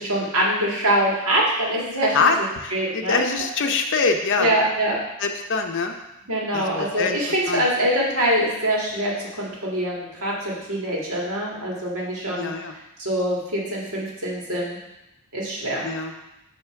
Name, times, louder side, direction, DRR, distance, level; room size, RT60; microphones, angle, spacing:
voice 1, 0.0-2.3 2.7-3.2 4.4-5.0 6.3-12.5 13.0-14.8 15.3-15.9, right 1 dB, 65° right, -4 dB, 1.9 m, -24 dB
voice 2, 2.1-4.5 5.2-6.0 6.5-7.2 7.5-7.7 12.3-12.7 15.8-16.1, left 4 dB, 55° left, 5 dB, 0.7 m, -24 dB
8.1 x 2.9 x 5.8 m, 0.92 s
head